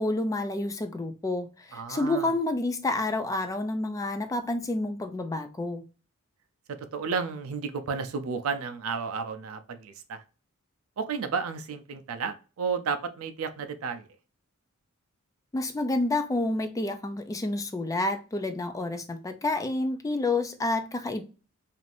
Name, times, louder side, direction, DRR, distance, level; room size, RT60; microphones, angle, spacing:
voice 1, 0.0-5.8 15.5-21.2, left 2 dB, 15° left, 0.3 m, -29 dB
voice 2, 1.7-2.3 6.7-10.2 11.0-14.1, right 5 dB, 75° right, 0.4 m, -32 dB
2.5 x 2.5 x 3.2 m
head